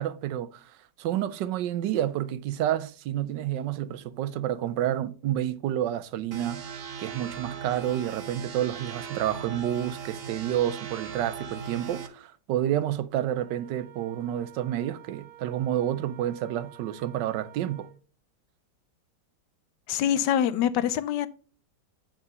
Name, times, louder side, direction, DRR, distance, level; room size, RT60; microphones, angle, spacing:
voice 1, 0.0-17.9, right 11 dB, 85° right, 1.3 m, -29 dB
sound 1, 6.3-12.1, right 7 dB, 50° right, 0.8 m, -38 dB
Wind instrument woodwind instrument, 13.1-18.0, right 12 dB, 65° right, 1.4 m, -51 dB
voice 2, 19.9-21.3, left 10 dB, 80° left, 1.2 m, -25 dB
8.8 x 3.9 x 5.3 m
omnidirectional pair, 1.9 m